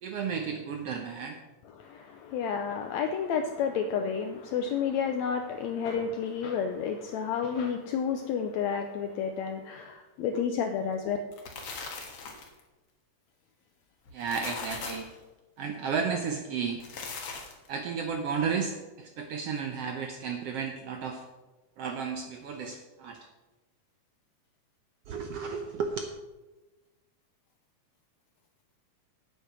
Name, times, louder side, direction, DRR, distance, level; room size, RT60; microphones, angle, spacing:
voice 1, 0.0-1.4 14.1-15.1 15.6-16.8 17.7-21.2 21.8-23.2 25.1-26.1, right 6 dB, 75° right, 1.4 m, -33 dB
voice 2, 1.7-11.2, left 7 dB, 80° left, 1.7 m, -31 dB
sound 1, 11.1-12.6 14.1-15.2 16.7-17.7, left 4 dB, 55° left, 2.1 m, -39 dB
8.6 x 8.2 x 6.0 m
omnidirectional pair, 3.7 m